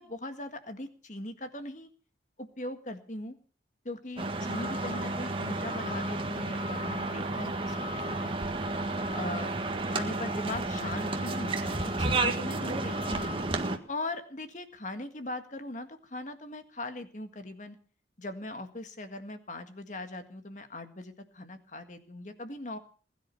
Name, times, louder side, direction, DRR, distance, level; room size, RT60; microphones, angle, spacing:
voice 1, 0.0-1.9 2.4-3.4 3.9-8.5 9.1-9.5 9.9-13.3 13.9-17.8 18.2-22.8, left 2 dB, 45° left, 8 dB, 1.8 m, -40 dB
sound 1, 4.2-13.8, right 2 dB, 30° right, 1.6 m, -31 dB
20.5 x 10.5 x 5.5 m, 0.41 s
head